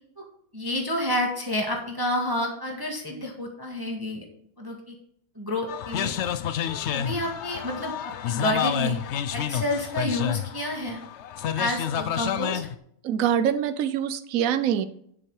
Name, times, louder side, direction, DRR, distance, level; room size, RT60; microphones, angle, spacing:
voice 1, 0.5-4.2 4.6-4.9 5.3-6.1 6.6-9.0 9.3-11.0 11.5-12.6, left 1 dB, 15° right, 1 dB, 1.7 m, -29 dB
sound 1, 5.7-12.8, left 9 dB, 70° left, 0.6 m, -29 dB
voice 2, 13.0-14.8, right 9 dB, 60° right, 12 dB, 1.1 m, -24 dB
9.8 x 7.9 x 4.8 m, 0.68 s
omnidirectional pair, 1.8 m